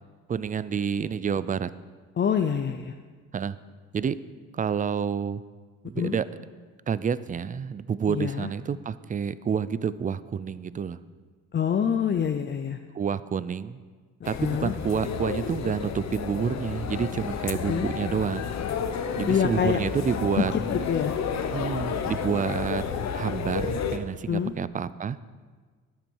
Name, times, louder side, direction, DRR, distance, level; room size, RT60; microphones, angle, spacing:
voice 1, 0.3-1.7 3.3-3.6 3.9-4.2 4.5-5.4 5.8-6.3 6.9-11.0 12.9-13.8 14.3-18.5 19.2-20.5 21.5-22.8 23.1-25.2, right 7 dB, 25° right, 16 dB, 0.4 m, -28 dB
voice 2, 2.2-2.9 6.0-6.2 8.1-8.5 11.5-12.8 14.4-14.7 17.7-17.9 19.3-19.8 20.4-20.6 20.9-21.1 24.3-24.5, left 8 dB, 35° left, 7 dB, 0.6 m, -26 dB
sound 1, 14.2-24.0, left 7 dB, 60° left, 0.9 m, -31 dB
12.5 x 8.8 x 4.6 m, 1.5 s
cardioid pair, 90°, 30 cm